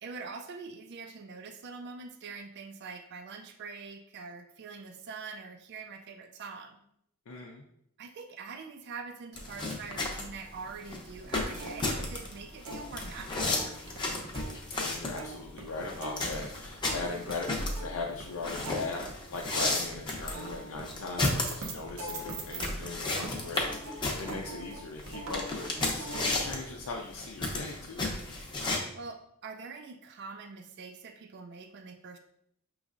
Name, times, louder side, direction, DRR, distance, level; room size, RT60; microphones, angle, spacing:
voice 1, 0.0-6.8 8.0-14.0 28.9-32.2, right 4 dB, 50° right, 5 dB, 0.4 m, -44 dB
voice 2, 7.3-7.6 14.8-28.1, left 3 dB, 85° left, 0 dB, 0.5 m, -39 dB
sound 1, 9.4-28.8, left 2 dB, 20° left, 0.6 m, -34 dB
sound 2, 11.2-14.0 14.2-22.9 23.2-26.5, right 2 dB, 80° right, 0.8 m, -43 dB
6.1 x 3.1 x 2.5 m, 0.73 s
head